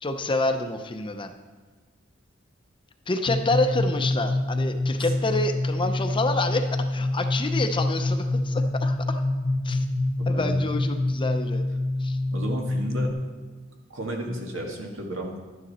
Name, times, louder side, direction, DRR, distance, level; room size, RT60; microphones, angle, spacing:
voice 1, 0.0-1.3 3.1-9.2 9.6-9.8 10.3-11.7 12.0-12.2, left 2 dB, 25° left, 7 dB, 0.7 m, -28 dB
sound 1, 3.3-13.1, left 2 dB, 70° left, 0.9 m, -26 dB
voice 2, 10.2-10.7 12.3-13.1 13.9-15.4, right 1 dB, 85° right, 1 dB, 1.9 m, -33 dB
12.0 x 9.2 x 4.2 m, 1.4 s
head